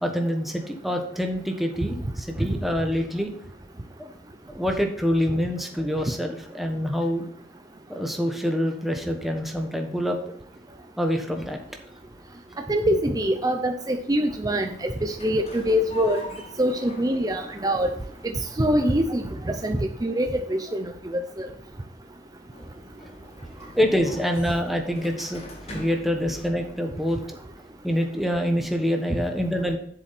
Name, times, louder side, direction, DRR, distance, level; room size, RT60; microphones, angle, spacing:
voice 1, 0.0-3.3 4.0-4.1 4.5-7.2 7.9-10.2 11.0-11.6 23.7-25.4 25.7-27.2 27.8-29.8, equal, ahead, 3 dB, 1.2 m, -26 dB
sound 1, 11.5-28.6, left 1 dB, 35° left, 1.7 m, -45 dB
voice 2, 12.7-16.2 16.6-17.9 18.6-21.5, equal, 20° right, 5 dB, 0.6 m, -24 dB
7.7 x 7.2 x 4.2 m, 0.64 s
head